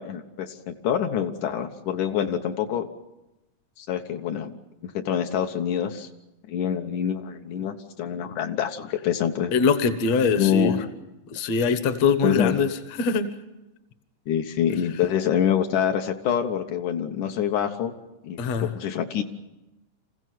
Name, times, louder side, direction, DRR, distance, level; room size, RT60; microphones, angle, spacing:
voice 1, 0.0-2.9 3.8-4.5 4.8-6.1 6.5-9.5 10.4-10.9 12.2-12.6 14.3-17.9 18.2-18.4 18.7-19.2, left 9 dB, 80° left, 5 dB, 2.6 m, -26 dB
voice 2, 9.5-10.8 11.3-13.3 18.4-18.7, left 5 dB, 65° left, 10 dB, 2.4 m, -23 dB
27.5 x 16.0 x 9.3 m, 1.0 s
omnidirectional pair, 3.5 m